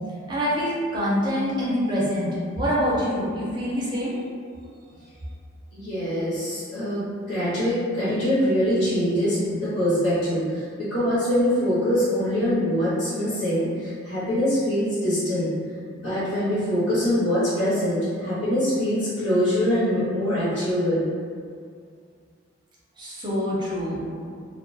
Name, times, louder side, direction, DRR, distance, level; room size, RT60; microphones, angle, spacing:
voice 1, 0.3-4.2 23.0-24.0, equal, 20° right, -8 dB, 0.5 m, -25 dB
voice 2, 5.7-15.5 16.0-21.0, equal, 80° left, -11 dB, 0.8 m, -24 dB
2.3 x 2.1 x 2.5 m, 2.1 s
head